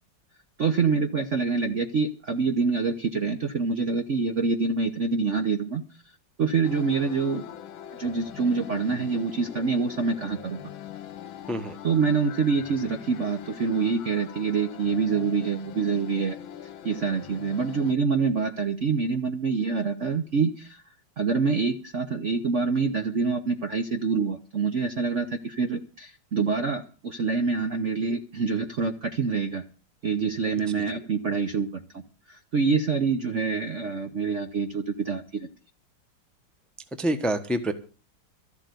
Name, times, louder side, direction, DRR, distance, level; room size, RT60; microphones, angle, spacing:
voice 1, 0.6-5.8 6.4-7.5 7.9-10.7 11.8-16.4 16.8-20.8 21.2-29.6 30.0-32.0 32.3-35.5, right 5 dB, 50° right, 8 dB, 1.0 m, -26 dB
sound 1, 6.6-17.9, left 10 dB, 75° left, 1.6 m, -42 dB
voice 2, 37.0-37.7, right 1 dB, ahead, 9 dB, 0.9 m, -26 dB
13.5 x 7.9 x 8.2 m, 0.37 s
omnidirectional pair, 2.2 m